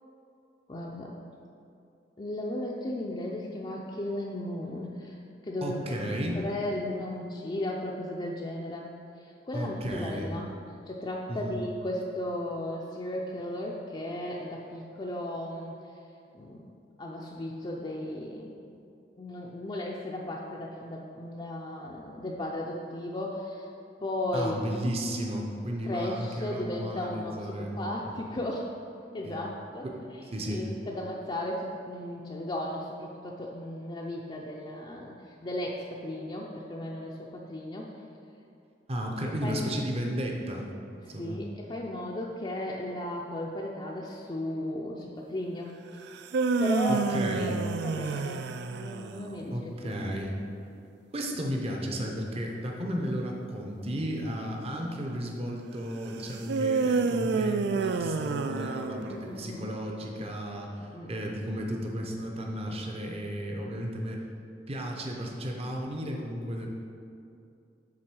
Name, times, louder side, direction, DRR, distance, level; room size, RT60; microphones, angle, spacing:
voice 1, 0.7-1.1 2.2-5.2 5.4-6.0 6.3-10.5 10.9-15.8 16.3-16.7 17.0-18.8 19.2-23.7 24.0-24.5 25.8-28.7 29.1-29.9 30.5-37.9 39.4-39.8 41.0-46.0 46.6-47.1 47.5-49.9 59.1-59.6 60.8-61.1, left 1 dB, 25° left, -3 dB, 0.5 m, -35 dB
voice 2, 5.6-6.4 9.5-10.3 11.3-11.6 24.3-28.2 29.2-29.4 29.8-30.0 30.3-30.7 38.9-41.4 46.9-47.6 49.5-50.4 51.1-64.2 64.7-66.7, equal, 35° right, 0 dB, 0.7 m, -34 dB
sound 1, 46.1-49.3 56.5-59.4, right 4 dB, 65° right, 0.3 m, -29 dB
7.6 x 3.7 x 6.2 m, 2.6 s
head